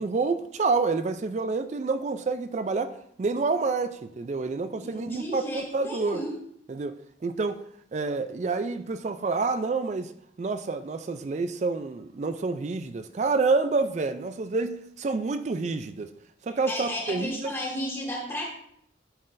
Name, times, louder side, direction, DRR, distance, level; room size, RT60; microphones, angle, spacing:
voice 1, 0.0-6.2 6.7-7.0 7.2-7.6 7.9-10.1 10.4-16.1 16.4-17.5, right 4 dB, 40° right, 0.3 m, -28 dB
voice 2, 4.8-6.3 16.5-18.4, equal, 15° left, 1.6 m, -33 dB
11.0 x 3.9 x 2.6 m
head